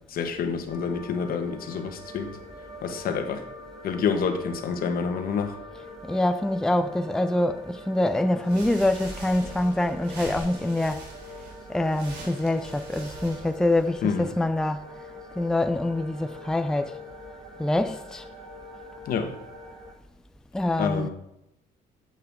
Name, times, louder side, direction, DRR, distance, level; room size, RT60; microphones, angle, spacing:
voice 1, 0.1-2.3 2.8-3.4 3.8-5.6 14.0-14.3 19.0-19.3 20.8-21.1, left 6 dB, 60° left, 1.6 m, -28 dB
sound 1, 0.7-19.9, equal, 45° right, 4.2 m, -44 dB
voice 2, 6.0-11.0 11.7-14.8 15.4-17.0 17.6-18.2 20.5-21.1, left 1 dB, 5° left, 0.5 m, -25 dB
sound 2, 8.4-14.1, right 2 dB, 85° right, 3.5 m, -43 dB
11.5 x 8.2 x 3.7 m
cardioid pair, 110°, 17 cm